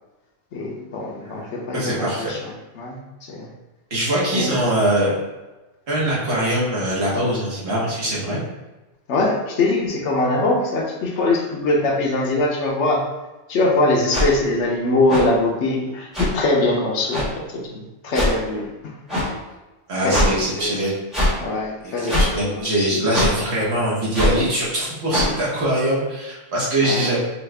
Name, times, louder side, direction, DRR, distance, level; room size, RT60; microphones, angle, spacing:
voice 1, 0.5-3.5 4.2-4.8 9.1-13.0 13.5-19.0 20.0-20.8 21.4-23.0 26.8-27.1, left 2 dB, 75° left, -1 dB, 1.0 m, -22 dB
voice 2, 1.7-2.3 3.9-5.1 5.9-8.4 19.9-20.9 21.8-27.2, right 1 dB, 65° right, -6 dB, 1.4 m, -22 dB
sound 1, 14.1-14.3 15.1-15.2 16.1-16.3 17.1-17.3 18.1-18.3 19.1-19.3 20.1-20.3 21.1-21.3 22.1-22.3 23.1-23.3 24.1-24.3 25.1-25.3, left 1 dB, ahead, 1.3 m, -20 dB
4.5 x 2.3 x 3.3 m, 1.1 s
omnidirectional pair, 1.2 m